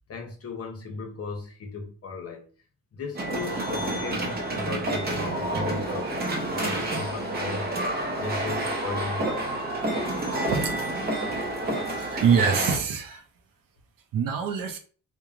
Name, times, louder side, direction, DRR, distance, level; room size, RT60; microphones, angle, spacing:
voice 1, 0.1-2.5 2.9-9.6, left 4 dB, 45° left, 0.6 m, -36 dB
sound 1, 3.1-12.8, right 1 dB, 30° right, 0.6 m, -29 dB
voice 2, 12.0-13.2 14.1-14.8, right 6 dB, 75° right, 0.6 m, -25 dB
3.0 x 2.1 x 2.4 m
wide cardioid pair, 135°, 33 cm